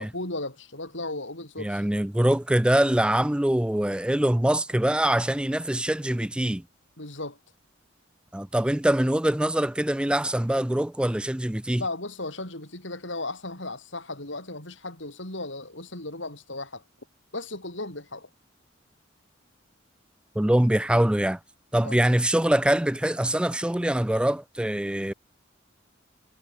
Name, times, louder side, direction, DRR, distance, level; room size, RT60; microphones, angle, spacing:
voice 1, 0.0-1.8 7.0-7.4 11.8-16.8 17.3-18.3 21.8-21.9, left 2 dB, 70° left, 7.6 m, -35 dB
voice 2, 1.6-6.6 8.3-11.8 20.4-21.4 21.7-25.1, right 1 dB, 5° right, 0.4 m, -24 dB
head